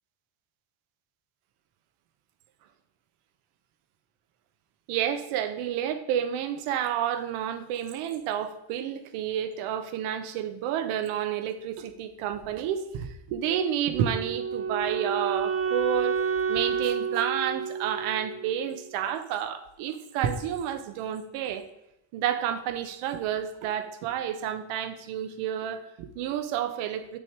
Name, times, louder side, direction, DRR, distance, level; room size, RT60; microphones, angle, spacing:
voice 1, 4.9-16.1 16.5-21.7 22.1-27.2, right 9 dB, 75° right, 10 dB, 1.1 m, -30 dB
Wind instrument woodwind instrument, 13.9-18.9, right 6 dB, 30° right, 0.5 m, -30 dB
7.3 x 6.7 x 4.6 m, 0.86 s
cardioid pair, 135°, 50 cm